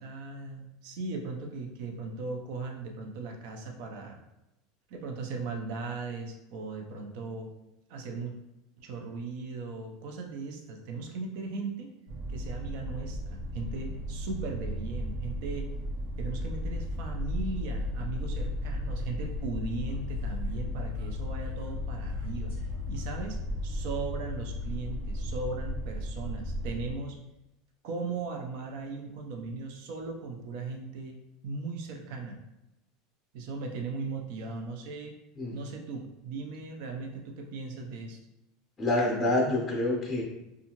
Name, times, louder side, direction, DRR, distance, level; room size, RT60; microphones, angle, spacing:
voice 1, 0.0-4.2 4.9-7.5 7.9-8.3 8.8-11.9 12.3-15.7 16.2-22.5 22.9-27.2 27.8-31.2 31.4-32.4 33.3-35.1 35.5-38.2, right 3 dB, 65° right, 2 dB, 0.5 m, -38 dB
sound 1, 12.1-26.9, left 1 dB, 85° right, 0.9 m, -35 dB
voice 2, 38.8-40.2, left 2 dB, 15° left, -1 dB, 0.6 m, -27 dB
2.6 x 2.4 x 2.9 m, 0.94 s
supercardioid pair, 140°, 0 cm